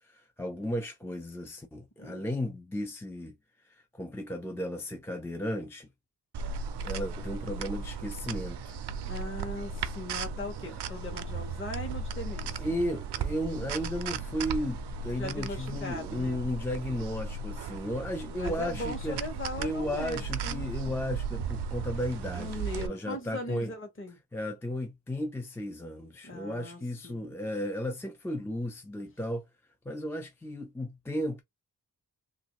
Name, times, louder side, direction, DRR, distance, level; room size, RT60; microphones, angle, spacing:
voice 1, 0.1-3.4 3.7-5.9 6.8-8.8 10.6-10.8 12.6-19.2 19.6-23.7 24.3-29.5 29.9-31.4, equal, 5° left, 0.4 m, -34 dB
sound 1, 6.3-22.9, right 5 dB, 75° right, 0.5 m, -36 dB
voice 2, 9.0-12.7 15.1-16.4 17.7-20.7 22.4-24.2 26.2-27.4, left 1 dB, 30° left, 1.1 m, -39 dB
3.0 x 2.6 x 2.9 m
wide cardioid pair, 120°, 41 cm